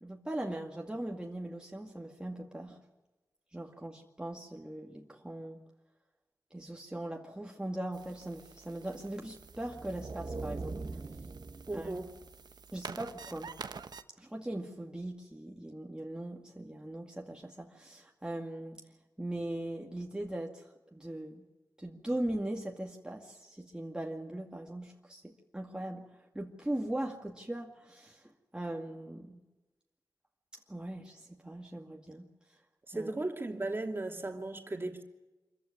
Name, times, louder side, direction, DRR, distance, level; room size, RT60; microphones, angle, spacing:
voice 1, 0.0-2.8 3.5-5.6 6.5-10.8 11.7-11.9 12.7-13.5 14.2-18.8 19.2-21.4 21.8-26.0 26.3-29.4 30.5-32.3 32.9-33.1, right 1 dB, 10° right, 0 dB, 2.1 m, -40 dB
sound 1, 7.9-14.0, right 5 dB, 70° right, 1.0 m, -49 dB
sound 2, 9.5-12.4, right 3 dB, 50° right, 1.3 m, -42 dB
voice 2, 11.7-12.1 32.9-35.0, right 2 dB, 30° right, 3 dB, 2.8 m, -36 dB
25.5 x 15.0 x 9.6 m, 1.1 s
wide cardioid pair, 75°, 7 cm